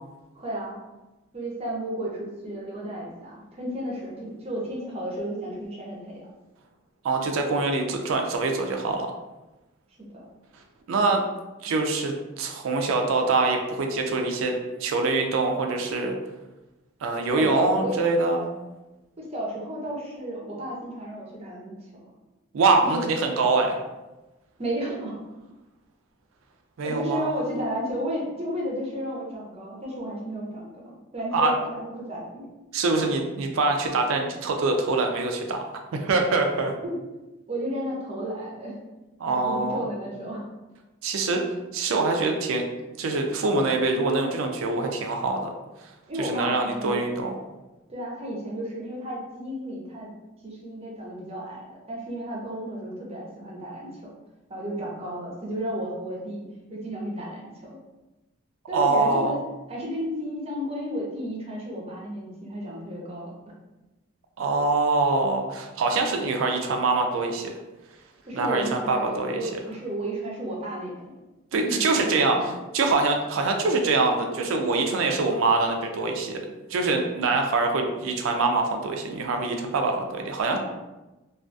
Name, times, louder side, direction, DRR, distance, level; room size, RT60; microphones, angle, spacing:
voice 1, 0.3-0.8 1.3-6.3 10.0-10.1 17.3-18.0 19.2-21.8 22.9-23.1 24.6-25.2 26.8-32.5 36.8-36.9 37.5-38.7 39.2-40.4 46.1-47.0 47.9-50.1 50.4-54.1 54.5-56.4 56.7-57.8 58.7-59.4 59.7-63.3 68.2-71.1 71.6-72.5 80.5-80.6, equal, 30° right, -3 dB, 0.6 m, -33 dB
voice 2, 7.0-9.1 10.9-11.2 11.6-16.2 17.0-18.5 22.5-23.8 26.8-27.3 31.3-31.5 32.7-35.6 35.9-36.7 39.2-39.8 41.0-41.4 41.7-42.6 43.0-45.5 46.2-47.4 58.7-59.3 64.4-67.5 68.4-69.4 71.5-76.4 76.7-80.6, right 3 dB, 80° right, 3 dB, 0.3 m, -24 dB
2.3 x 2.3 x 2.5 m, 1.1 s
head